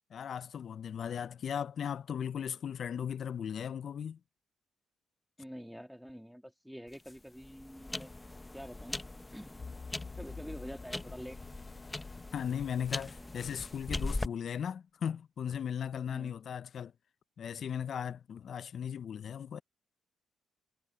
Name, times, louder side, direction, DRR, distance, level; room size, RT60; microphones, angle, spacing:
voice 1, 0.1-4.2 12.3-16.9 17.4-19.6, left 8 dB, 55° left, 0.6 m, -37 dB
voice 2, 5.4-8.1 8.5-9.0 9.3-9.6 10.2-11.4 16.1-16.3, equal, ahead, 2.8 m, -46 dB
sound 1, 6.9-14.3, left 2 dB, 15° left, 0.8 m, -41 dB
sound 2, 9.6-13.7, left 4 dB, 35° left, 2.7 m, -48 dB
cardioid pair, 90°, 0 cm